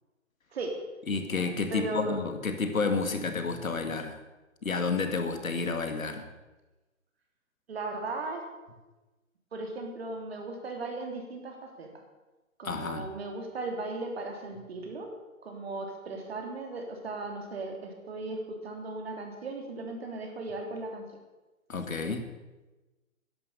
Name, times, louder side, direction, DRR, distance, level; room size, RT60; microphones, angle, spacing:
voice 1, 1.1-4.2 4.6-6.2 12.6-13.1 21.7-22.2, left 4 dB, 75° left, 7 dB, 2.3 m, -30 dB
voice 2, 1.7-2.2 7.7-8.4 9.5-11.9 12.6-15.1 15.4-21.1, right 3 dB, 45° right, 3 dB, 3.2 m, -37 dB
13.0 x 11.0 x 6.8 m, 1.1 s
hypercardioid pair, 160°, 41 cm